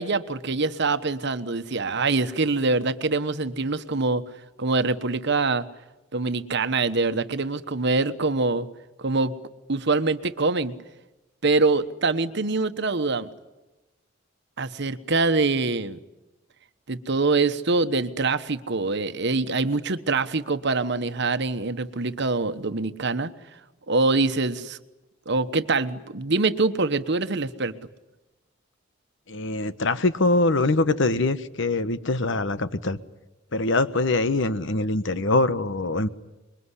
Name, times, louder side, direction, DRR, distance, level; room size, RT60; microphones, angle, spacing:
voice 1, 0.0-4.2 4.6-5.6 6.1-8.7 9.0-9.3 9.7-10.7 11.4-13.3 14.6-16.0 16.9-23.3 23.9-24.8 25.3-27.7, right 3 dB, 60° right, 11 dB, 1.2 m, -24 dB
voice 2, 29.3-33.0 33.5-36.1, left 2 dB, 65° left, 13 dB, 1.2 m, -23 dB
26.0 x 22.5 x 9.9 m, 1.0 s
head